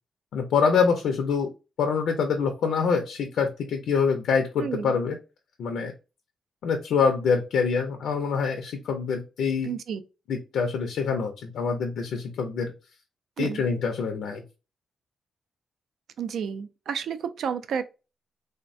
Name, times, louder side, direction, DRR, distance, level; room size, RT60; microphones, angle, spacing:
voice 1, 0.3-1.5 1.8-5.2 5.6-5.9 6.6-9.7 10.3-12.7 13.4-14.4, left 5 dB, 85° left, 0.5 m, -25 dB
voice 2, 4.6-5.0 9.6-10.0 13.4-13.6 16.2-17.8, right 7 dB, 70° right, 0.4 m, -31 dB
3.3 x 2.1 x 2.5 m
cardioid pair, 125°, 0 cm